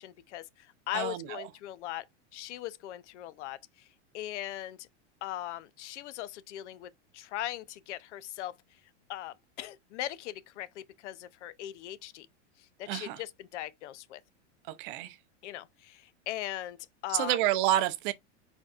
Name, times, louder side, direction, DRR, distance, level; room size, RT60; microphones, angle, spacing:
voice 1, 0.0-2.1 2.3-3.9 4.1-4.9 5.2-8.6 9.1-12.3 12.6-14.2 15.4-17.4, left 13 dB, 75° left, 0.6 m, -39 dB
voice 2, 0.9-1.4 12.9-13.2 14.7-15.2 17.1-18.1, right 14 dB, 45° right, 0.6 m, -29 dB
4.4 x 4.3 x 2.4 m
supercardioid pair, 145°, 36 cm